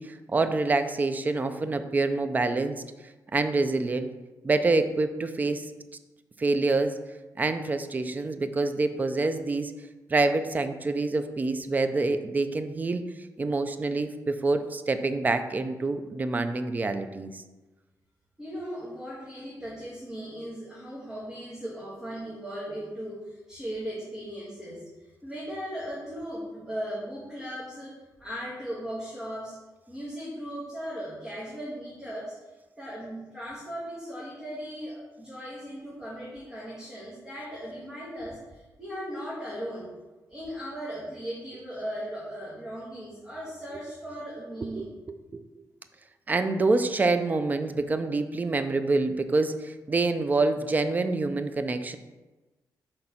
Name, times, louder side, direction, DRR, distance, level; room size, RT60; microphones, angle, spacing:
voice 1, 0.0-2.8 3.3-4.1 4.4-5.7 6.4-7.0 7.4-9.7 10.1-13.0 13.4-17.3 44.8-45.4 46.3-52.0, right 3 dB, 25° right, 9 dB, 0.5 m, -26 dB
voice 2, 18.4-24.9 25.2-29.6 29.9-32.4 32.8-39.9 40.3-44.9, equal, 5° right, -8 dB, 1.6 m, -37 dB
6.1 x 3.8 x 5.7 m, 1.1 s
wide cardioid pair, 140°, 7 cm